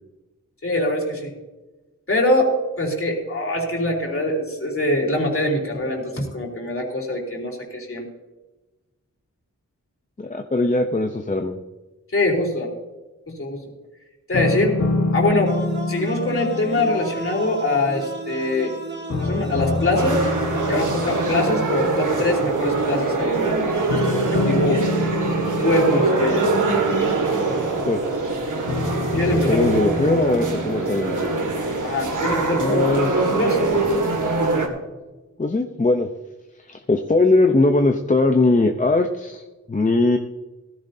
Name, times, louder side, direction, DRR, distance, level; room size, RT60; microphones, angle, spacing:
voice 1, 0.6-1.3 2.1-8.1 12.1-12.7 13.3-13.6 14.3-14.8 15.1-15.6 15.9-18.7 19.2-20.3 20.7-25.2 25.6-26.5 29.1-29.6 31.8-32.8 33.2-33.6, left 1 dB, 45° left, -1 dB, 3.4 m, -23 dB
voice 2, 10.2-11.6 27.9-28.0 29.5-31.3 32.6-33.1 35.4-36.1 36.7-39.4 39.7-40.2, left 2 dB, 25° left, 4 dB, 0.7 m, -20 dB
sound 1, 14.3-18.7 19.1-22.4 23.9-27.9 28.7-30.9, left 2 dB, 60° left, 1.3 m, -27 dB
sound 2, 15.5-21.5, right 2 dB, 35° right, 1.4 m, -34 dB
sound 3, 19.9-34.7, right 3 dB, 75° right, 2.0 m, -23 dB
16.5 x 14.5 x 2.8 m, 1.1 s
wide cardioid pair, 110°, 31 cm